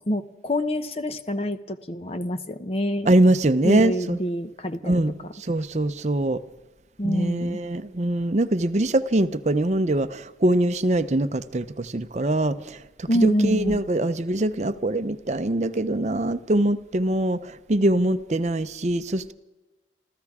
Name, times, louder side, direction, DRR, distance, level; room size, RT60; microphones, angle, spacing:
voice 1, 0.1-3.1 3.6-5.0 7.0-7.6 13.1-13.8, equal, 35° left, 0.8 m, -26 dB
voice 2, 3.1-4.2 4.8-5.1 5.4-6.4 7.0-19.3, right 1 dB, 40° right, 0.6 m, -23 dB
28.0 x 14.5 x 3.6 m
head